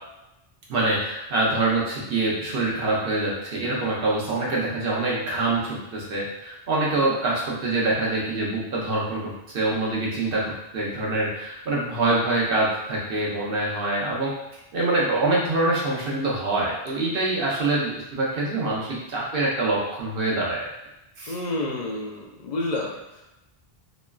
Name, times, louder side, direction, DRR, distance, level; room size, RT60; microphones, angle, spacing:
voice 1, 0.7-10.4 10.7-14.3 14.7-20.7 21.2-21.4, right 2 dB, 65° right, -4 dB, 0.9 m, -25 dB
voice 2, 21.3-23.2, left 2 dB, 55° left, -1 dB, 0.5 m, -30 dB
3.0 x 2.3 x 2.2 m, 0.92 s
omnidirectional pair, 1.0 m